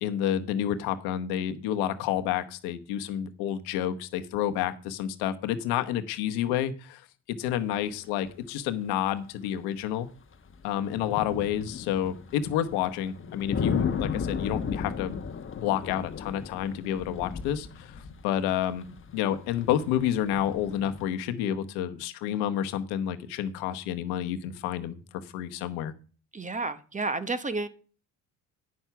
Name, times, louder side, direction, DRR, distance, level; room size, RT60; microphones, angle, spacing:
voice 1, 0.0-10.1 10.6-15.2 15.6-18.9 19.1-25.9, left 10 dB, 85° left, 1.0 m, -29 dB
sound 1, 7.5-7.7 8.0-8.1 9.0-9.1 10.3-21.0, left 6 dB, 35° left, 1.0 m, -35 dB
voice 2, 26.3-27.7, right 3 dB, 20° right, 1.0 m, -31 dB
9.7 x 6.0 x 5.7 m
supercardioid pair, 70°, 37 cm